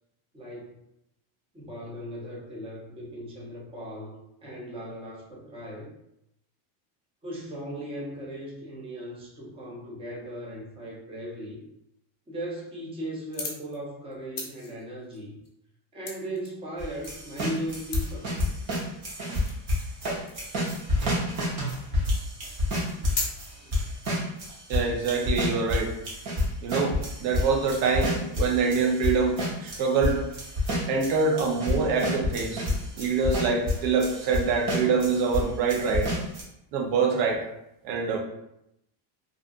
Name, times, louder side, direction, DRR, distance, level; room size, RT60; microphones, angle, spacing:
voice 1, 0.3-0.8 1.5-5.9 7.2-11.6 12.3-15.4 15.9-18.4 22.9-23.1 23.5-23.8, right 1 dB, 10° right, -4 dB, 0.4 m, -38 dB
sound 1, 13.2-13.8 14.1-16.5 16.8-17.6 17.9-18.1 18.7-18.8 19.4-19.9 20.3-20.6 21.2-21.3 21.6-21.7 22.0-22.4 22.8-23.2, left 4 dB, 35° left, 0.7 m, -37 dB
sound 2, 16.8-35.4 35.7-36.4, left 1 dB, 50° right, 1.0 m, -29 dB
voice 2, 24.7-25.9 26.6-30.2 30.9-32.7 32.9-36.1 36.7-37.5 37.8-38.2, right 5 dB, 90° right, 1 dB, 0.7 m, -25 dB
2.5 x 2.3 x 2.4 m, 0.80 s
cardioid pair, 135°, 50 cm